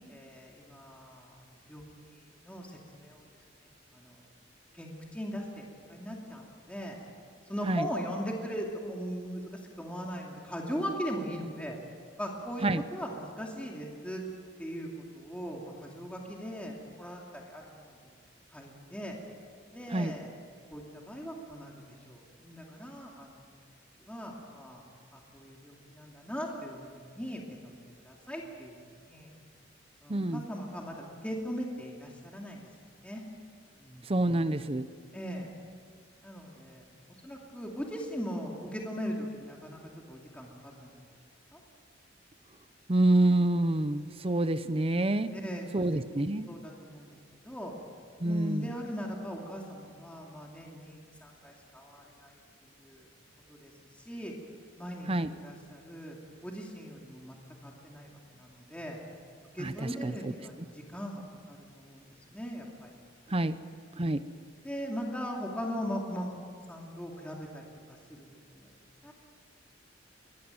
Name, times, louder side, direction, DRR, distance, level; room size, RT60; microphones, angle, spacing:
voice 1, 0.1-3.3 3.9-4.2 4.7-7.0 7.5-11.8 12.2-14.2 14.6-18.0 18.5-19.2 19.7-20.3 20.7-23.4 24.0-24.8 25.1-28.7 29.0-29.3 30.0-32.7 33.0-33.2 33.8-34.0 35.1-35.5 36.2-36.8 37.2-39.8 40.1-40.9 41.5-41.6 45.3-47.1 47.4-47.7 48.2-53.1 53.5-54.3 54.8-57.4 57.6-59.0 59.5-63.0 64.6-66.3 66.7-67.7 68.1-68.2 68.5-68.7 69.0-69.1, equal, 5° left, -1 dB, 2.6 m, -39 dB
voice 2, 30.1-30.4 34.1-34.9 42.9-45.3 45.7-46.5 48.2-48.7 55.1-55.3 59.6-60.3 63.3-63.6 64.0-64.2, right 1 dB, 30° right, 12 dB, 0.7 m, -27 dB
23.5 x 18.5 x 9.2 m, 2.1 s
head